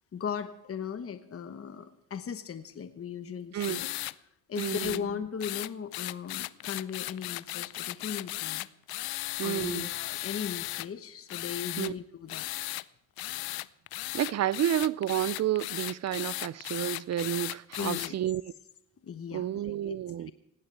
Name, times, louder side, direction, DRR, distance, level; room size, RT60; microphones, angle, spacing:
voice 1, 0.1-3.9 4.5-8.7 9.4-12.5 17.8-18.1 19.0-20.0, left 7 dB, 40° left, 1.1 m, -37 dB
sound 1, 3.6-4.1 4.6-5.0 5.4-10.9 11.3-11.9 12.3-12.8 13.2-18.1, left 18 dB, 75° left, 0.6 m, -36 dB
voice 2, 4.6-5.0 9.4-9.9 11.8-11.9 14.1-18.4 19.3-20.3, right 11 dB, 45° right, 0.5 m, -30 dB
18.5 x 16.5 x 3.3 m
supercardioid pair, 70°, 37 cm